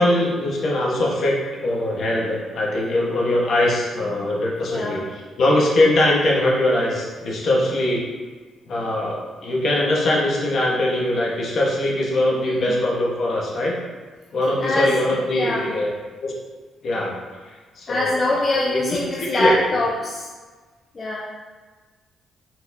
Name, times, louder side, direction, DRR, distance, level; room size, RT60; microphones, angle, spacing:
voice 1, 0.0-5.0 5.4-8.0 8.7-13.8 14.3-15.9 16.2-16.3 16.8-17.2 17.4-18.4 18.7-19.8, left 1 dB, 55° left, -3 dB, 1.2 m, -21 dB
voice 2, 4.7-5.0 12.4-12.8 14.6-15.7 17.9-20.3 20.9-21.2, left 2 dB, 35° left, -4 dB, 0.6 m, -24 dB
4.4 x 4.0 x 2.7 m, 1.4 s
cardioid pair, 90°, 0 cm